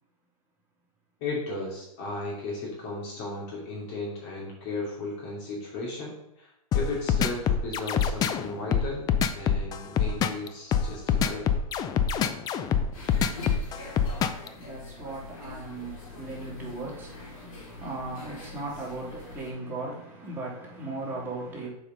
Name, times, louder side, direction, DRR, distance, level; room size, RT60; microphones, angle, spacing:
voice 1, 1.2-11.5, left 2 dB, 45° left, 2.7 m, -35 dB
sound 1, 6.7-14.5, left 7 dB, 20° left, 0.5 m, -25 dB
sound 2, 12.9-19.5, left 3 dB, 60° left, 2.8 m, -43 dB
voice 2, 14.2-21.7, right 2 dB, 10° right, 3.0 m, -37 dB
6.7 x 5.0 x 5.2 m
hypercardioid pair, 125°, 19 cm